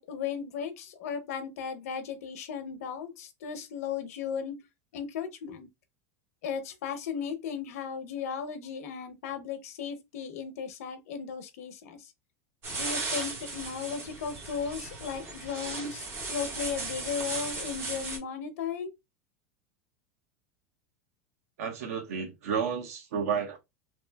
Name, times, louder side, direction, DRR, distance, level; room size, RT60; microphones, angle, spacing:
voice 1, 0.0-4.6 4.9-5.7 6.4-12.1 12.7-18.9, left 7 dB, 90° left, 0.8 m, -36 dB
sound 1, 12.6-18.2, right 3 dB, 30° right, 1.2 m, -36 dB
voice 2, 21.6-23.6, right 6 dB, 85° right, 1.1 m, -31 dB
3.1 x 2.7 x 2.2 m
supercardioid pair, 175°, 8 cm